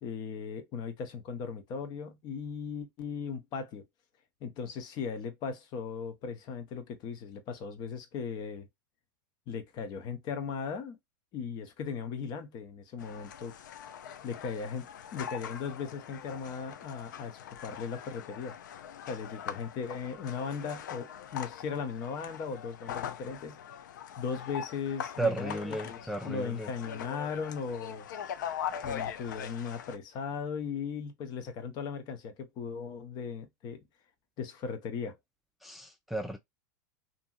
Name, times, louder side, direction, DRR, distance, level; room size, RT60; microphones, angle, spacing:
voice 1, 0.0-3.9 4.4-8.7 9.5-11.0 11.3-13.5 14.2-18.6 19.1-23.8 24.2-28.1 28.8-33.9 34.4-35.2, left 6 dB, 45° left, 0.7 m, -38 dB
sound 1, 13.0-30.0, left 9 dB, 75° left, 0.4 m, -42 dB
voice 2, 25.2-26.7 35.6-36.4, right 2 dB, ahead, 0.4 m, -34 dB
2.7 x 2.7 x 2.2 m
hypercardioid pair, 100°, 10 cm